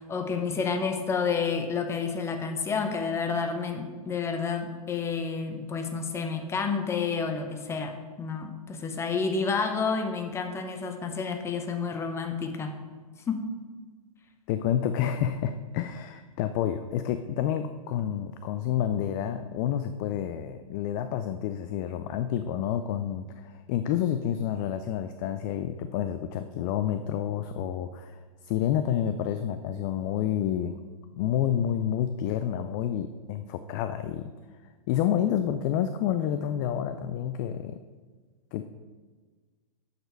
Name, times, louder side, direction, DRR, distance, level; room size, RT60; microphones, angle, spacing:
voice 1, 0.0-12.7 13.3-13.4, left 5 dB, 15° left, 5 dB, 0.9 m, -30 dB
voice 2, 14.5-30.8 31.2-34.3 34.9-37.8 38.5-38.6, left 10 dB, 30° left, 9 dB, 0.4 m, -29 dB
7.8 x 6.6 x 4.6 m, 1.4 s
figure-of-eight pair, 115°, 19 cm